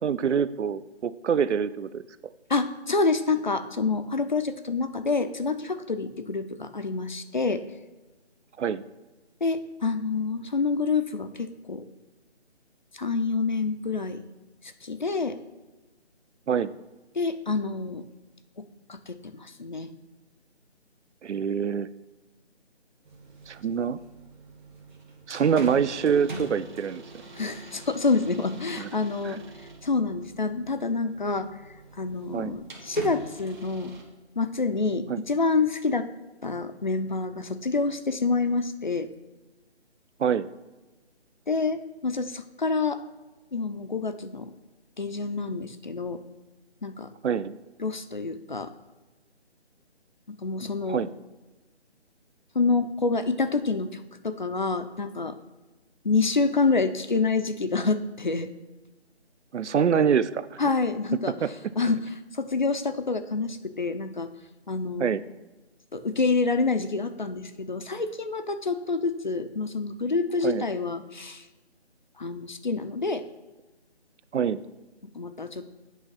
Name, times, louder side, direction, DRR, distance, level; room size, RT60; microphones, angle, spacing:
voice 1, 0.0-2.0 8.6-8.8 16.5-16.7 21.2-21.9 23.5-24.0 25.3-27.0 28.8-28.9 29.2-29.4 32.3-32.6 35.1-35.2 40.2-40.5 47.2-47.5 50.9-51.1 59.5-60.5 61.4-61.9 65.0-65.2 70.4-70.7 74.3-74.6, right 7 dB, 85° right, 16 dB, 0.5 m, -25 dB
voice 2, 2.5-7.6 9.4-11.8 12.9-14.2 14.8-15.4 17.2-18.0 18.9-19.9 27.4-29.4 29.8-31.5 32.0-33.9 34.4-36.1 36.4-39.1 41.5-43.0 43.5-44.5 45.0-46.2 46.8-47.1 47.8-48.7 50.3-51.0 52.5-55.3 56.0-58.5 60.6-61.3 61.8-64.3 64.7-65.1 65.9-71.5 72.2-73.2 75.1-75.7, left 4 dB, 45° left, 9 dB, 0.5 m, -27 dB
sound 1, 23.0-34.0, right 2 dB, 45° right, 1.4 m, -43 dB
9.0 x 3.1 x 5.6 m, 1.2 s
figure-of-eight pair, 165°, 34 cm